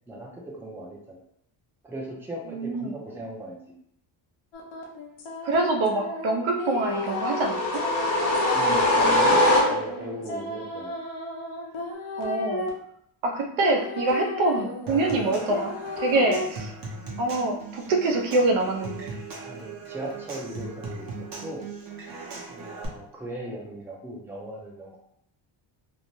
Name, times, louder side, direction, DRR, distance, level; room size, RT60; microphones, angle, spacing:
voice 1, 0.1-1.2 1.8-3.6 8.5-9.4 9.7-11.0 19.4-21.1 21.4-21.6 22.5-25.0, right 1 dB, 5° right, -3 dB, 0.5 m, -37 dB
voice 2, 2.5-2.9 5.4-7.8 12.2-12.6 13.2-16.7 17.2-19.1, right 2 dB, 80° right, 2 dB, 0.7 m, -25 dB
sound 1, 4.5-12.7 13.6-16.4, left 2 dB, 80° left, 0.8 m, -34 dB
sound 2, 6.9-10.1, left 1 dB, 35° left, 0.8 m, -22 dB
Human voice / Acoustic guitar / Percussion, 14.9-22.9, right 3 dB, 45° right, 0.8 m, -38 dB
2.6 x 2.1 x 3.0 m, 0.72 s
cardioid pair, 135°, 46 cm